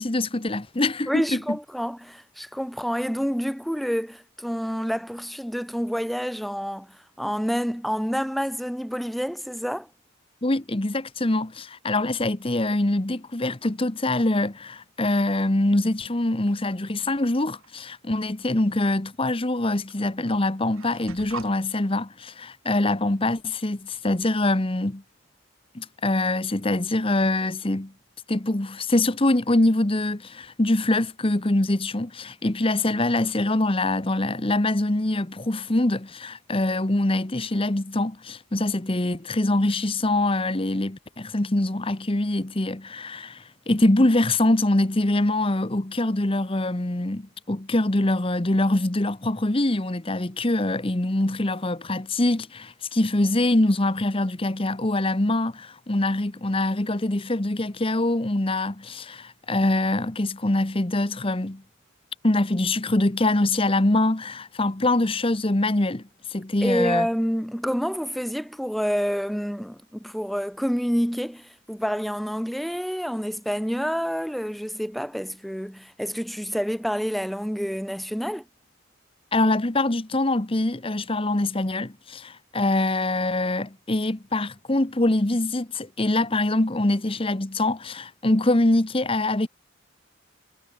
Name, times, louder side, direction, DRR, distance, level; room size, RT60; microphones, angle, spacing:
voice 1, 0.0-1.6 10.4-25.0 25.7-27.9 28.3-61.6 62.2-66.0 66.3-67.1 79.3-89.5, left 2 dB, 25° left, 1.0 m, -24 dB
voice 2, 1.1-9.9 66.6-78.4, equal, ahead, 1.4 m, -28 dB
sound 1, 17.2-17.7 18.9-19.0 19.9-20.0 20.3-21.5, right 4 dB, 85° right, 3.9 m, -41 dB
head